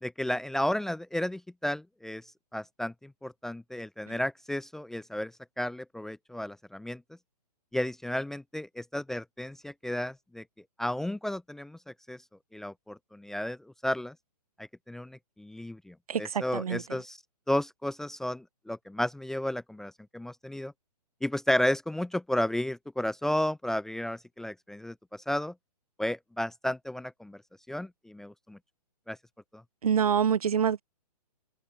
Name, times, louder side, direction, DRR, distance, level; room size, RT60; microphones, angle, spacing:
voice 1, 0.0-2.2 2.5-5.3 5.6-7.0 7.7-10.4 10.8-11.8 12.1-12.2 12.5-13.6 13.8-14.1 14.9-17.2 17.5-20.7 21.2-25.5 26.0-27.4 27.7-28.6 29.1-29.2 29.5-29.6, left 1 dB, ahead, 0.5 m, -33 dB
voice 2, 16.1-16.8 29.8-30.8, right 8 dB, 60° right, 0.8 m, -26 dB
figure-of-eight pair, 125°, 21 cm